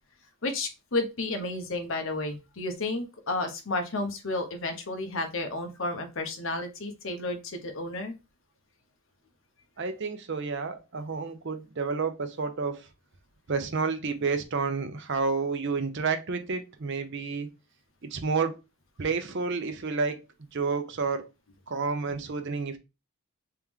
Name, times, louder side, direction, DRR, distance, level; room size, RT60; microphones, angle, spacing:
voice 1, 0.4-8.1, left 2 dB, 60° left, 0.8 m, -32 dB
voice 2, 9.8-12.8 13.5-17.5 18.0-18.6 19.0-20.2 20.5-21.3 21.7-22.8, right 4 dB, 55° right, 0.6 m, -30 dB
3.5 x 3.0 x 3.5 m
head